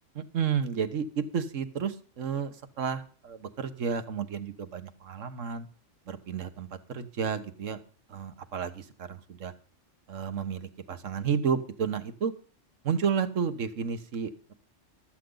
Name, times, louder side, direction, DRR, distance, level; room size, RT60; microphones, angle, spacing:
voice 1, 0.1-5.7 6.1-7.8 8.1-9.5 10.1-12.3 12.8-14.5, right 7 dB, 75° right, 10 dB, 1.6 m, -32 dB
15.0 x 13.0 x 3.9 m, 0.39 s
omnidirectional pair, 1.3 m